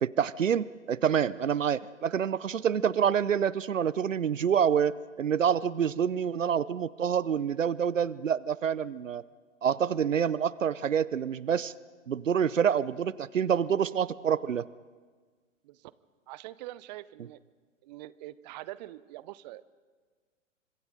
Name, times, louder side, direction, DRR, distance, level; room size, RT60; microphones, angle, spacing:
voice 1, 0.0-4.9 5.2-9.2 9.6-11.7 12.1-14.7, right 8 dB, 80° right, 20 dB, 0.7 m, -27 dB
voice 2, 16.3-17.4 17.8-19.6, right 16 dB, 35° right, 18 dB, 0.7 m, -44 dB
29.5 x 25.5 x 3.9 m, 1.5 s
figure-of-eight pair, 115°, 38 cm